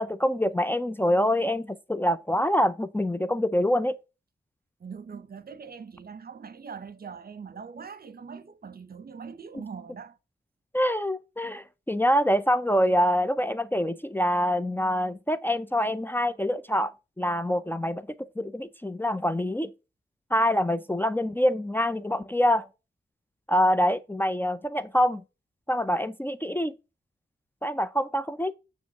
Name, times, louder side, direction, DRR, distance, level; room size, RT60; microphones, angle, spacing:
voice 1, 0.0-4.0 10.7-18.1 18.4-19.7 20.3-22.7 23.5-25.2 25.7-26.7 27.6-28.5, equal, 10° left, 0.5 m, -25 dB
voice 2, 4.8-10.2, right 6 dB, 55° right, 0.8 m, -42 dB
8.4 x 3.1 x 5.8 m
wide cardioid pair, 80°, 19 cm